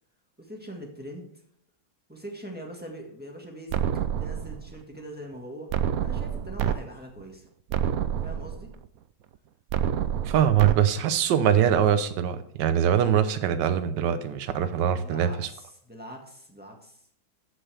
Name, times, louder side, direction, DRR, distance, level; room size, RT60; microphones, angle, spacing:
voice 1, 0.4-1.3 2.1-3.8 4.2-7.5 8.2-8.7 14.9-17.0, equal, 5° right, 0 dB, 1.5 m, -42 dB
sound 1, 3.7-4.7 5.7-6.7 7.2-7.3 7.7-8.7 9.7-10.7, right 9 dB, 85° right, 0.7 m, -28 dB
voice 2, 10.3-15.5, right 9 dB, 70° right, 11 dB, 1.4 m, -23 dB
14.0 x 6.2 x 3.4 m, 0.66 s
omnidirectional pair, 2.2 m